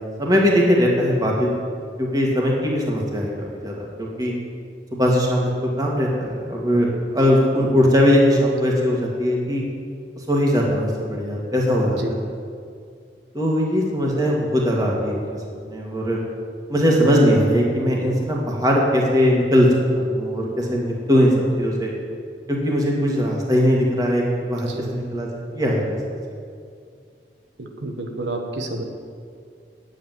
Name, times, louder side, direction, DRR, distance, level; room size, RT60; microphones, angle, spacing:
voice 1, 0.0-1.5 2.0-4.3 4.9-5.4 5.8-9.6 10.3-12.2 13.3-15.3 15.6-16.2 16.7-19.7 20.0-21.3 21.6-21.9 22.5-26.0, equal, 20° right, -2 dB, 2.1 m, -20 dB
voice 2, 27.6-28.8, right 2 dB, 90° right, 3 dB, 1.4 m, -30 dB
9.4 x 7.9 x 9.4 m, 2.3 s
head